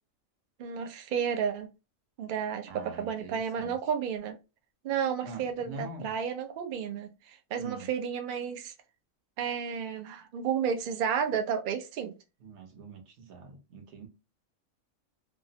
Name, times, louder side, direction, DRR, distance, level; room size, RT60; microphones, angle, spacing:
voice 1, 0.6-1.7 2.2-4.4 4.8-8.7 9.4-12.1, right 7 dB, 80° right, 0.4 m, -32 dB
voice 2, 2.7-3.8 5.2-6.2 7.6-7.9 12.4-14.1, right 4 dB, 65° right, 1.0 m, -44 dB
2.6 x 2.0 x 2.7 m
omnidirectional pair, 1.4 m